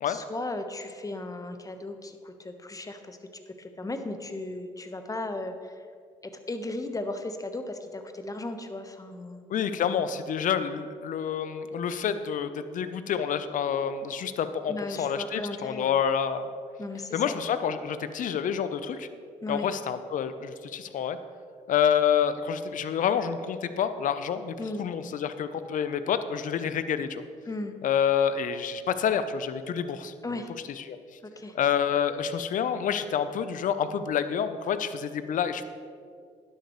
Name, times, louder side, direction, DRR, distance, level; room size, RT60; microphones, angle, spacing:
voice 1, 0.1-3.2 3.5-5.9 6.2-9.4 14.7-16.0 16.8-17.4 19.4-19.7 24.6-24.8 27.5-27.7 30.2-30.5 31.2-31.6, left 2 dB, 20° left, 7 dB, 1.2 m, -36 dB
voice 2, 9.5-16.5 17.1-19.1 19.5-21.2 21.7-27.2 27.8-30.1 30.8-31.0 31.5-35.6, left 8 dB, 55° left, 11 dB, 0.7 m, -28 dB
13.0 x 10.5 x 3.1 m, 2.2 s
hypercardioid pair, 45°, 16 cm